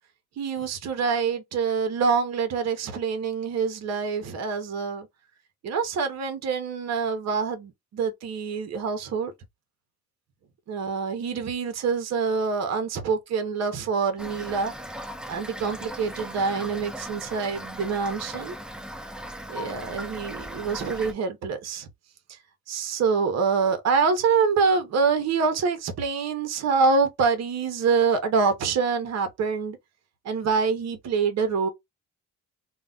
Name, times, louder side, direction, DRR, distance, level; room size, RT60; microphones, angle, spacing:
voice 1, 0.4-5.1 5.6-9.3 10.7-14.7 15.3-18.5 19.5-21.9 22.7-29.8 30.2-31.7, right 5 dB, 60° right, 0.8 m, -25 dB
Toilet flush / Fill (with liquid), 14.2-21.1, equal, 5° right, 0.4 m, -38 dB
2.3 x 2.1 x 3.7 m
cardioid pair, 90°, 30 cm